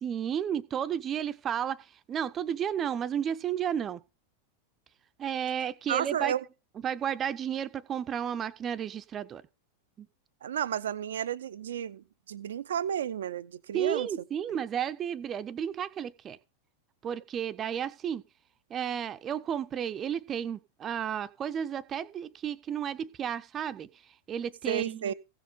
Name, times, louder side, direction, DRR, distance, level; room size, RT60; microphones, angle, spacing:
voice 1, 0.0-4.0 5.2-6.3 6.8-9.4 10.0-10.1 13.7-16.4 17.0-18.2 18.7-23.9 24.3-25.1, right 9 dB, 25° right, 0.7 m, -32 dB
voice 2, 5.9-6.4 10.4-14.1 24.7-25.1, right 9 dB, 65° right, 0.6 m, -32 dB
16.0 x 6.7 x 5.1 m
figure-of-eight pair, 90°, 0 cm